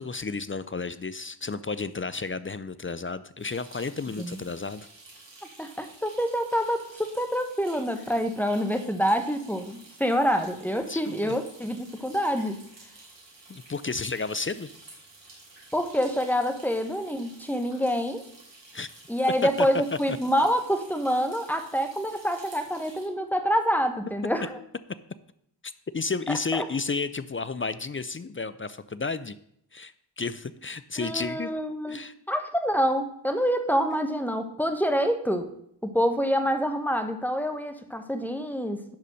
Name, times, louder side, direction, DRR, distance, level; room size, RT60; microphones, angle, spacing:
voice 1, 0.0-4.9 10.9-11.4 13.5-14.7 18.7-18.9 19.6-19.7 25.9-29.4 29.7-31.5 31.9-32.1, left 4 dB, 30° left, 14 dB, 0.4 m, -32 dB
sound 1, 3.4-23.0, right 2 dB, 85° right, 3.3 m, -51 dB
voice 2, 5.6-12.6 15.7-18.2 19.1-24.6 26.3-26.7 31.0-32.0 32.3-35.5 35.8-38.8, equal, 5° left, 7 dB, 1.1 m, -27 dB
10.5 x 4.2 x 6.3 m, 0.72 s
cardioid pair, 45°, 43 cm